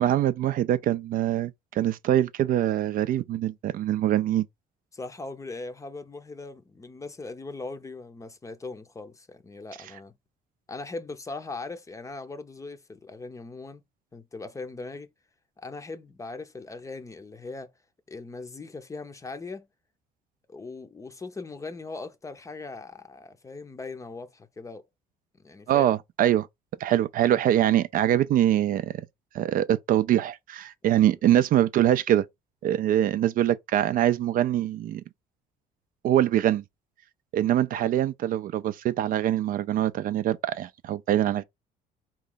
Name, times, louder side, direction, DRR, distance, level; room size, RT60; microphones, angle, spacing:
voice 1, 0.0-4.5 25.7-26.5 26.8-29.0 29.3-32.3 32.6-35.0 36.0-36.6 37.3-41.4, right 12 dB, 55° right, 0.4 m, -23 dB
voice 2, 4.9-10.1 10.7-13.8 14.1-15.1 15.6-17.7 18.1-19.7 20.5-24.9 25.4-25.9, left 3 dB, 20° left, 0.6 m, -39 dB
4.1 x 3.0 x 3.8 m
cardioid pair, 110°, 17 cm